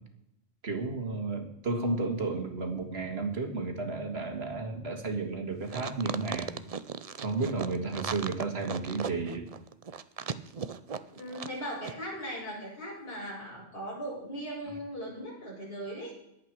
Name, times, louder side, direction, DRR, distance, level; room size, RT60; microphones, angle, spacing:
voice 1, 0.6-6.6 7.2-9.5, right 3 dB, 65° right, 5 dB, 2.2 m, -32 dB
sound 1, 5.7-11.6 11.8-11.9, right 6 dB, 40° right, 0.6 m, -37 dB
voice 2, 11.1-16.1, equal, 55° left, -6 dB, 7.3 m, -38 dB
21.5 x 8.5 x 4.7 m, 0.82 s
omnidirectional pair, 1.2 m